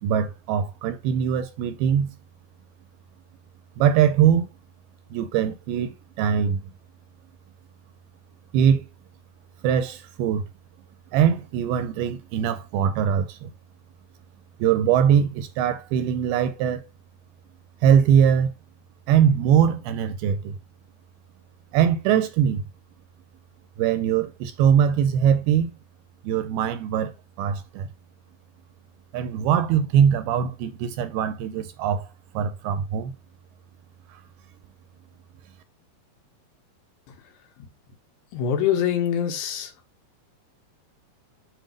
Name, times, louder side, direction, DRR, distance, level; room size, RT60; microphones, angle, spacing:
voice 1, 0.0-2.1 3.8-4.5 5.1-6.7 8.5-8.9 9.6-10.4 11.1-13.5 14.6-16.8 17.8-18.5 19.1-20.6 21.7-22.6 23.8-25.7 26.2-27.1 27.4-27.9 29.1-32.1 32.3-33.1, right 8 dB, 80° right, 2.3 m, -21 dB
voice 2, 38.3-39.7, left 9 dB, 80° left, 3.1 m, -24 dB
7.5 x 2.6 x 5.0 m
omnidirectional pair, 4.7 m